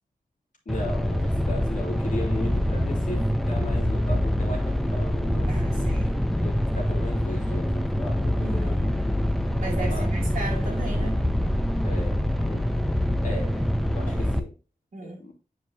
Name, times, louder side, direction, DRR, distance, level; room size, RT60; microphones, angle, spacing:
voice 1, 0.7-5.9 6.4-8.8 9.7-10.1 11.8-12.7 13.2-14.5 15.0-15.3, left 1 dB, 65° left, 2.5 m, -37 dB
sound 1, 0.7-14.4, equal, ahead, 0.6 m, -25 dB
voice 2, 5.5-6.1 8.4-9.0 9.6-11.3 14.1-14.3 14.9-15.3, right 2 dB, 55° right, 1.8 m, -36 dB
9.9 x 4.7 x 2.8 m
wide cardioid pair, 120°, 14 cm